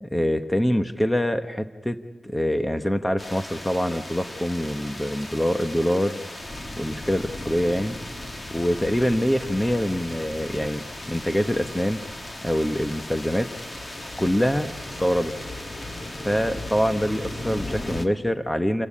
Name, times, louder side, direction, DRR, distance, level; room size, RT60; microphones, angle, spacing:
voice 1, 0.0-2.0 2.2-6.2 6.8-7.9 8.5-12.0 12.4-13.5 14.2-15.3 16.2-18.9, equal, 5° left, 9 dB, 1.0 m, -25 dB
sound 1, 3.2-18.1, left 1 dB, 20° left, 1.7 m, -36 dB
29.0 x 16.0 x 9.9 m, 1.2 s
wide cardioid pair, 125°, 0 cm